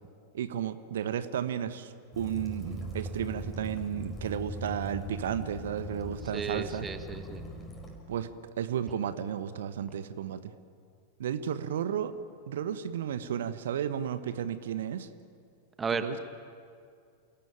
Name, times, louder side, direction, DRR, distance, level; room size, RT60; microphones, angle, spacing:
voice 1, 0.3-6.9 8.1-8.3 8.6-10.5 11.2-12.1 12.5-15.1 15.9-16.2, right 9 dB, 60° right, 12 dB, 1.2 m, -33 dB
Waves surf / Splash splatter / Trickle dribble, 2.1-8.0, equal, 15° left, 5.6 m, -40 dB
voice 2, 6.3-7.4 15.8-16.2, right 5 dB, 15° right, 9 dB, 1.5 m, -34 dB
28.5 x 18.0 x 9.0 m, 2.3 s
figure-of-eight pair, 90°, 0 cm